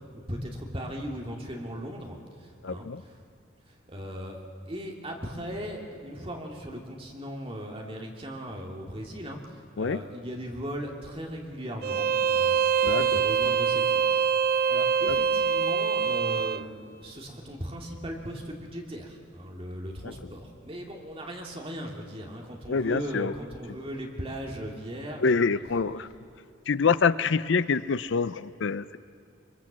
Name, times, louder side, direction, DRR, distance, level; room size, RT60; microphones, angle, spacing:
voice 1, 0.1-2.2 2.6-3.1 3.9-4.4 4.7-14.0 14.7-26.1, equal, 30° right, 0 dB, 2.5 m, -38 dB
voice 2, 2.6-3.0 9.8-10.0 12.8-13.2 15.1-15.2 20.0-20.1 22.7-23.3 25.2-26.1 26.7-29.0, left 5 dB, 65° left, 15 dB, 0.5 m, -26 dB
Bowed string instrument, 11.8-16.6, right 7 dB, 50° right, 0.5 m, -24 dB
23.5 x 23.0 x 7.4 m, 2.4 s
head